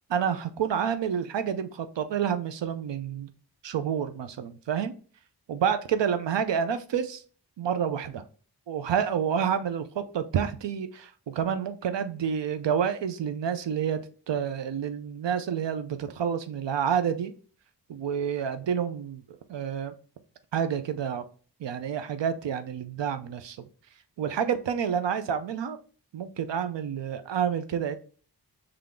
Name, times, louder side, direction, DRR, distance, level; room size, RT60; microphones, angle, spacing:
voice 1, 0.1-3.3 3.6-4.9 5.5-7.2 7.6-8.2 8.7-14.0 14.3-17.3 17.9-19.9 20.5-21.2 21.6-23.6 24.2-25.8 26.1-27.9, right 8 dB, 90° right, 10 dB, 0.5 m, -29 dB
3.8 x 3.3 x 3.6 m, 0.40 s
wide cardioid pair, 80°, 42 cm